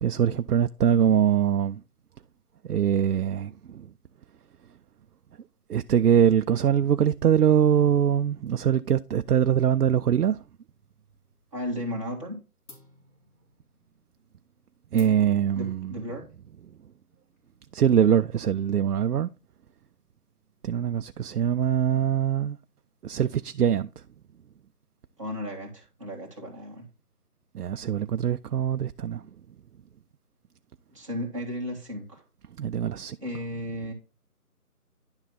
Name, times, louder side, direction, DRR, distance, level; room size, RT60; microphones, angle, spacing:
voice 1, 0.0-1.8 2.7-3.9 5.7-10.4 14.9-16.0 17.7-19.3 20.6-22.6 23.0-23.9 27.5-29.2 32.6-33.2, right 9 dB, 85° right, 0.5 m, -23 dB
sound 1, 10.7-11.6 11.9-12.3 12.7-17.8, left 2 dB, 50° left, 3.1 m, -56 dB
voice 2, 11.5-12.4 15.5-16.3 25.2-26.9 30.9-32.2 33.2-33.9, equal, 20° right, 1.7 m, -34 dB
10.5 x 3.9 x 4.1 m
figure-of-eight pair, 175°, 46 cm